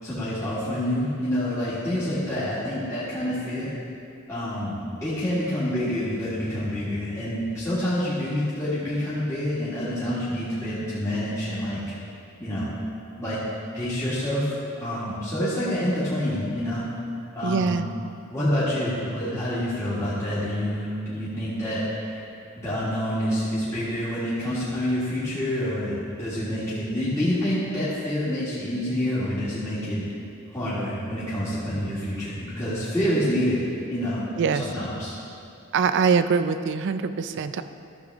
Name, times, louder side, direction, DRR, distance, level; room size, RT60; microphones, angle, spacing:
voice 1, 0.0-3.7 4.3-11.8 12.4-12.7 13.2-13.4 13.7-16.8 17.3-17.8 18.2-22.2 22.6-30.0 30.5-33.6 33.9-34.2 34.5-35.1, equal, 15° left, -12 dB, 1.9 m, -27 dB
voice 2, 17.4-17.9 34.4-34.7 35.7-37.6, right 5 dB, 60° right, 11 dB, 0.4 m, -23 dB
13.5 x 6.9 x 3.6 m, 2.6 s
head